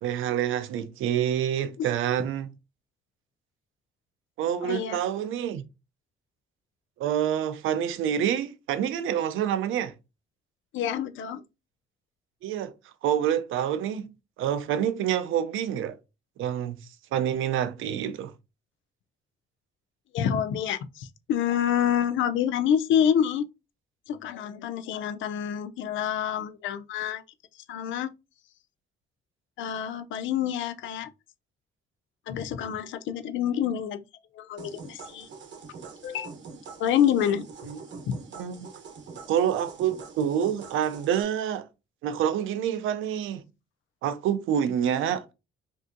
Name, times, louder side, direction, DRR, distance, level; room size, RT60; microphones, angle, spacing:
voice 1, 0.0-2.5 4.4-5.7 7.0-9.9 12.4-12.7 13.0-14.1 14.4-16.0 16.4-16.8 17.1-18.3 37.7-37.8 38.4-38.7 39.3-41.7 42.0-43.4 44.0-45.2, right 9 dB, 85° right, 0.5 m, -27 dB
voice 2, 4.6-5.0 10.7-11.4 20.1-23.5 24.1-27.2 27.7-28.1 29.6-31.1 32.3-34.0 34.3-35.3 36.0-36.3 36.8-37.5 38.1-38.2, left 9 dB, 75° left, 0.4 m, -27 dB
sound 1, 34.6-41.2, right 5 dB, 65° right, 0.9 m, -44 dB
3.4 x 2.7 x 2.5 m
cardioid pair, 90°, 20 cm